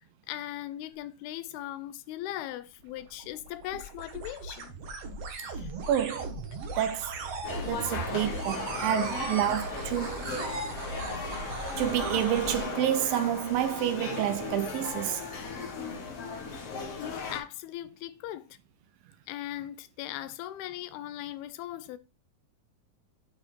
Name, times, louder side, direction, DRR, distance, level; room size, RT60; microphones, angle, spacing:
voice 1, 0.3-4.7 5.3-5.7 17.0-18.6 19.3-22.0, left 13 dB, 90° left, 2.7 m, -39 dB
sound 1, 2.8-12.7, right 3 dB, 65° right, 1.6 m, -38 dB
voice 2, 5.9-6.4 6.8-7.3 7.6-10.3 11.8-15.3, right 11 dB, 80° right, 2.2 m, -29 dB
sound 2, 7.4-17.4, left 5 dB, 50° left, 2.1 m, -37 dB
9.5 x 4.4 x 4.3 m
omnidirectional pair, 4.4 m